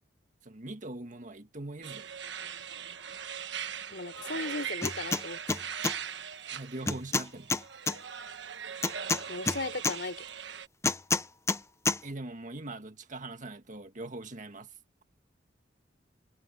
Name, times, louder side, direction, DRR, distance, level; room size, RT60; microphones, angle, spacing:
voice 1, 0.4-2.1 6.5-7.6 12.0-14.7, right 2 dB, 45° right, 1.7 m, -41 dB
sound 1, 1.8-10.7, right 8 dB, 70° right, 1.2 m, -40 dB
voice 2, 3.9-5.6 9.3-10.2, left 3 dB, 65° left, 4.3 m, -37 dB
sound 2, 4.8-5.2 5.5-5.9 6.9-8.0 8.8-10.0 10.8-11.6 11.9-12.0, left 3 dB, 15° left, 0.8 m, -28 dB
head